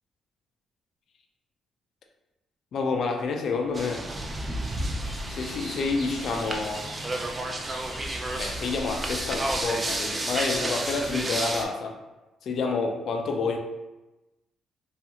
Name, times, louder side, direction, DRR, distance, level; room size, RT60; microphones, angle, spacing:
voice 1, 2.7-4.1 5.3-6.9 8.3-12.0 12.4-13.6, left 4 dB, 65° left, 3 dB, 0.4 m, -29 dB
sound 1, 3.5-9.7, equal, 70° right, 0.7 m, -45 dB
sound 2, 3.7-11.6, right 1 dB, 25° right, 0.4 m, -31 dB
2.4 x 2.4 x 2.8 m, 1.0 s
cardioid pair, 90°, 0 cm